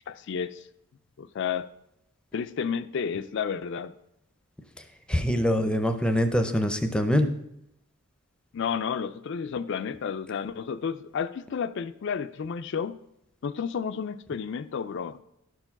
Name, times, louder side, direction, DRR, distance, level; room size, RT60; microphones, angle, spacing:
voice 1, 0.1-0.7 1.2-1.7 2.3-3.9 8.5-13.0 13.4-15.2, left 6 dB, 55° left, 11 dB, 0.4 m, -31 dB
voice 2, 5.1-7.3, equal, 5° left, 7 dB, 0.6 m, -24 dB
11.5 x 4.5 x 5.8 m, 0.80 s
head